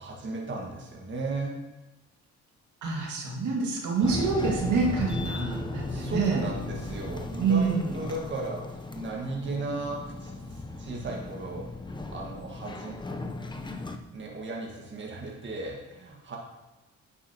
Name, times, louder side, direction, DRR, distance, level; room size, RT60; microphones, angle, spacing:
voice 1, 0.0-1.5 5.9-13.0 14.1-16.4, right 2 dB, 40° right, -1 dB, 1.7 m, -36 dB
voice 2, 2.8-6.5 7.4-7.9, right 4 dB, 75° right, -1 dB, 2.1 m, -27 dB
sound 1, 4.0-14.0, left 2 dB, 15° left, 0.7 m, -36 dB
10.0 x 7.3 x 2.9 m, 1.1 s
cardioid pair, 90°, 30 cm